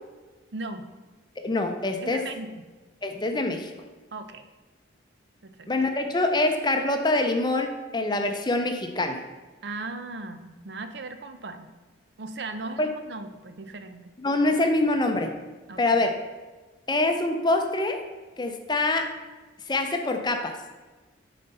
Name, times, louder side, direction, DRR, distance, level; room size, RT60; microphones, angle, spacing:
voice 1, 0.5-0.9 2.0-2.5 4.1-4.5 5.4-5.7 9.6-11.7 12.2-14.0 15.7-16.0, right 3 dB, 60° right, 9 dB, 0.6 m, -37 dB
voice 2, 1.4-2.2 3.0-3.7 5.7-9.2 12.8-12.9 14.2-15.3 15.8-16.1 16.9-18.0 18.4-19.1 19.7-20.6, left 2 dB, 20° left, 5 dB, 0.6 m, -25 dB
9.0 x 4.3 x 5.5 m, 1.3 s
head